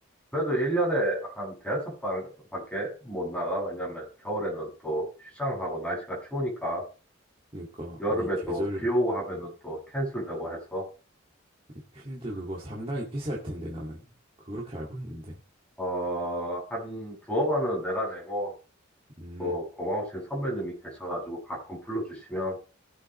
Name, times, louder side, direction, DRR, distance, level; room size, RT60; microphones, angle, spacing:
voice 1, 0.3-6.8 8.0-10.8 15.8-18.5 19.4-22.6, equal, 5° left, -3 dB, 7.7 m, -30 dB
voice 2, 7.5-8.9 9.3-9.4 11.7-14.0 14.4-15.4 19.2-19.6, equal, 25° right, -4 dB, 2.4 m, -36 dB
19.0 x 8.0 x 3.3 m, 0.35 s
head